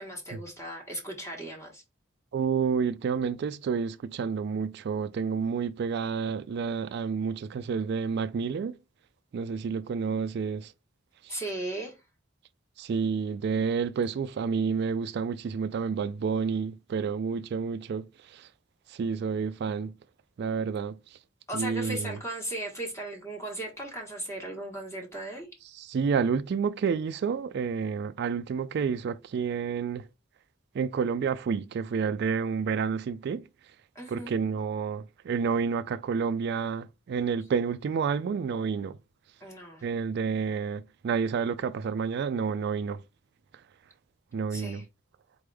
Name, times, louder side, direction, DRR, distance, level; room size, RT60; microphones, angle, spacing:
voice 1, 0.0-1.8 11.3-12.0 21.5-25.5 33.9-34.4 39.4-39.9 44.5-44.8, right 1 dB, 15° left, 1.4 m, -37 dB
voice 2, 2.3-8.7 9.3-10.7 11.2-11.4 12.8-18.5 18.9-19.9 20.4-21.0 21.5-22.2 25.7-30.1 30.7-33.4 34.1-39.0 39.8-43.0 44.3-44.8, right 6 dB, 55° right, 0.3 m, -29 dB
4.2 x 3.4 x 3.3 m
head